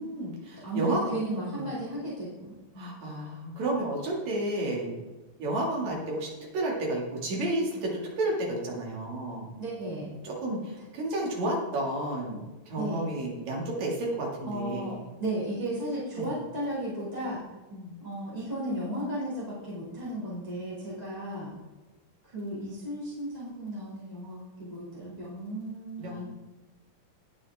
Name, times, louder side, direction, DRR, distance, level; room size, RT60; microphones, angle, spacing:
voice 1, 0.0-1.0 1.4-1.7 2.8-4.9 5.4-9.5 10.2-15.0 16.2-16.3 17.7-17.9 26.0-26.2, right 1 dB, 60° right, -2 dB, 3.6 m, -31 dB
voice 2, 0.6-3.0 9.6-10.1 12.8-13.0 14.4-17.4 18.0-21.5 22.2-26.2, right 1 dB, 15° right, -9 dB, 2.3 m, -35 dB
18.5 x 6.3 x 3.6 m, 1.2 s
omnidirectional pair, 3.8 m